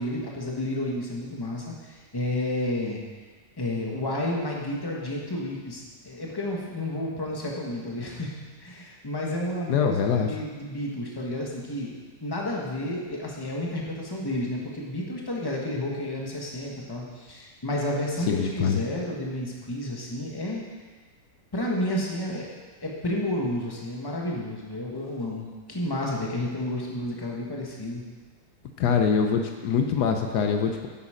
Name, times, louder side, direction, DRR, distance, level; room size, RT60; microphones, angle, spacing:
voice 1, 0.0-3.0 3.6-11.9 12.2-20.6 21.5-22.5 22.8-28.0, left 1 dB, 15° left, -2 dB, 1.4 m, -31 dB
voice 2, 9.7-10.3 18.3-18.8 28.8-30.9, left 6 dB, 75° left, 4 dB, 1.3 m, -24 dB
9.9 x 8.2 x 5.0 m, 1.4 s
omnidirectional pair, 1.8 m